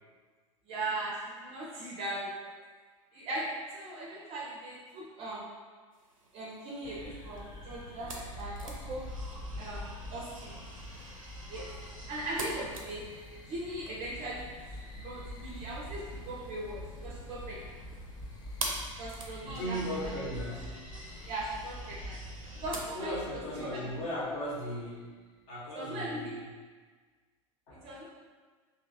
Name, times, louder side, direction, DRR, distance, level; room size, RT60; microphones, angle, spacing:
voice 1, 0.7-2.5 3.1-5.5 6.3-9.1 9.6-10.6 11.5-11.7 12.1-13.0 13.5-17.7 19.0-20.1 21.3-22.2 22.5-23.9 25.7-26.4 27.8-28.0, right 1 dB, 35° right, -4 dB, 0.5 m, -39 dB
sound 1, 5.9-22.8, right 2 dB, 85° right, 0.5 m, -47 dB
sound 2, 6.8-24.8, left 1 dB, 25° left, 0.4 m, -45 dB
voice 2, 19.4-21.3 22.9-25.1 25.5-26.5 27.7-27.9, equal, 45° left, -5 dB, 1.0 m, -38 dB
2.8 x 2.8 x 2.6 m, 1.5 s
figure-of-eight pair, 85°, 17 cm